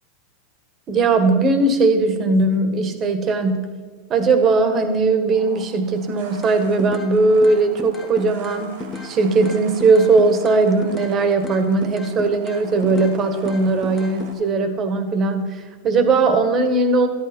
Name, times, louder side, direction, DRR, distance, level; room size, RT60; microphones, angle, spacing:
voice 1, 0.9-3.7 4.1-8.8 9.0-17.1, right 3 dB, 35° right, 9 dB, 1.6 m, -18 dB
sound 1, 5.3-14.3, right 5 dB, 70° right, 2.4 m, -43 dB
sound 2, 6.4-7.1 7.4-9.1 9.4-11.1 11.4-13.1 13.4-14.3, left 4 dB, 15° left, 1.2 m, -34 dB
13.0 x 11.0 x 4.5 m, 1.5 s
hypercardioid pair, 100°, 0 cm